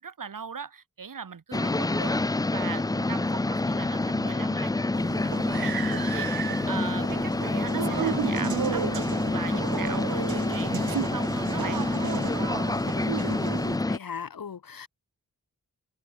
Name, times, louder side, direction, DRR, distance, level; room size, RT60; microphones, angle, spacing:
voice 1, 0.0-2.2 2.5-6.3 6.7-11.8, right 6 dB, 65° right, 2.8 m, -39 dB
sound 1, 1.5-14.0, left 2 dB, 10° left, 0.4 m, -27 dB
sound 2, 5.0-13.8, right 8 dB, 85° right, 1.1 m, -34 dB
voice 2, 13.9-14.9, left 7 dB, 75° left, 1.8 m, -38 dB
open air
wide cardioid pair, 125°, 35 cm